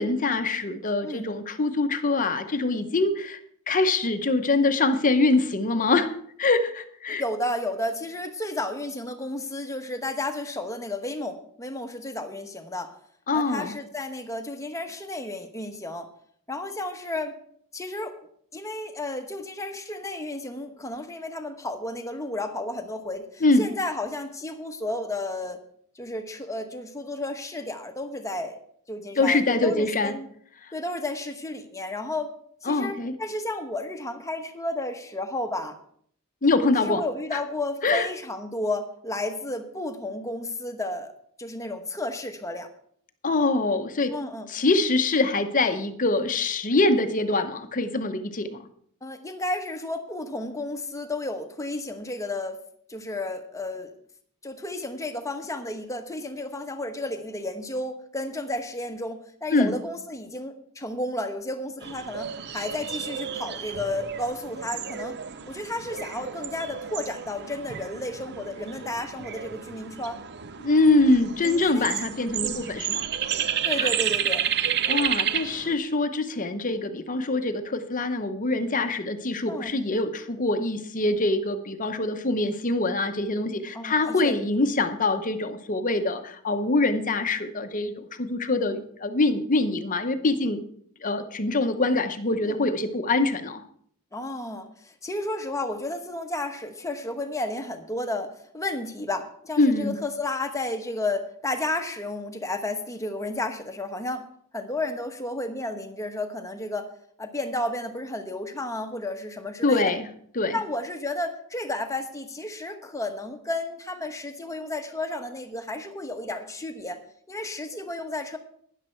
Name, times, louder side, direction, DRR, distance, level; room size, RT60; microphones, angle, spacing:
voice 1, 0.0-3.4 3.7-6.1 6.4-7.2 13.3-13.8 23.4-23.6 29.2-30.1 32.7-33.1 36.4-37.0 37.3-37.4 37.8-38.1 43.2-44.1 44.5-48.6 59.5-59.7 70.6-73.1 73.8-73.9 74.9-90.6 91.0-93.6 99.6-99.9 109.6-110.1 110.4-110.6, left 2 dB, 35° left, 8 dB, 0.9 m, -24 dB
voice 2, 7.2-12.9 13.3-16.1 16.5-17.3 17.7-18.2 18.5-25.6 25.9-28.6 28.9-30.3 30.7-32.3 32.6-35.8 36.8-41.1 41.4-42.7 44.1-44.5 49.0-52.6 52.9-53.9 54.4-65.2 65.5-70.2 71.4-71.9 72.4-72.7 73.6-74.5 79.5-79.7 83.7-84.4 92.4-92.5 94.1-104.3 104.5-106.9 107.2-109.9 110.5-117.0 117.3-118.4, left 2 dB, 15° left, 6 dB, 1.0 m, -32 dB
sound 1, 61.8-75.7, right 9 dB, 50° right, 0.6 m, -31 dB
12.5 x 10.0 x 4.5 m, 0.63 s
head